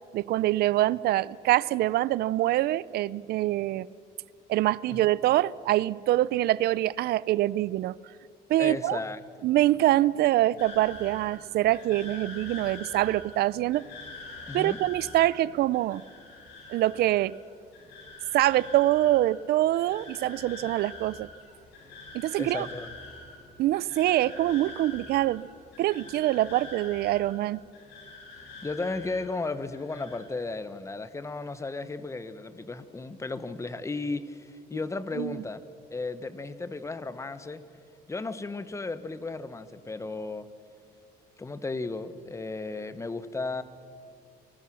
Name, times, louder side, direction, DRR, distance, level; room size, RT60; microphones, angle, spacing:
voice 1, 0.1-3.9 4.5-7.9 8.5-9.0 9.4-13.8 14.5-16.0 16.7-17.3 18.3-21.3 22.1-22.7 23.6-25.5 25.8-27.6 35.1-35.4, right 15 dB, 70° right, 0.5 m, -25 dB
voice 2, 8.6-9.2 14.5-14.8 22.4-22.9 28.6-35.6 35.9-37.6 38.1-40.5 41.4-43.6, left 3 dB, 15° left, 1.1 m, -34 dB
sound 1, 10.6-29.5 29.7-30.2, left 3 dB, 80° left, 7.7 m, -45 dB
29.5 x 19.5 x 6.3 m
cardioid pair, 110°, 17 cm